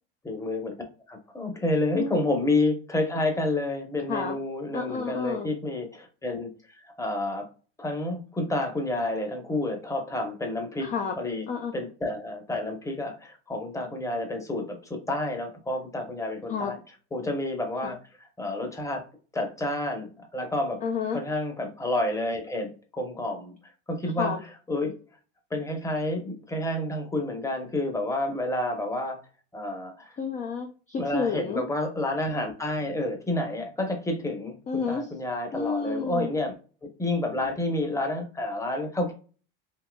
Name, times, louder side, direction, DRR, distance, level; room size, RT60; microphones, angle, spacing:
voice 1, 0.2-0.8 1.1-7.5 7.8-10.9 11.2-11.4 11.7-16.8 17.1-18.0 18.4-19.0 19.3-20.8 21.1-23.5 23.9-24.3 24.7-24.9 25.5-29.2 29.5-30.2 31.0-36.5 37.0-39.1, left 2 dB, 10° left, 4 dB, 0.9 m, -29 dB
voice 2, 4.7-5.5 10.8-11.2 11.5-11.7 16.5-16.7 17.8-17.9 20.8-21.2 24.2-24.4 30.2-31.6 34.7-35.1 35.5-36.3, left 5 dB, 25° left, 4 dB, 0.5 m, -30 dB
3.7 x 2.7 x 2.3 m, 0.37 s
supercardioid pair, 105°, 30 cm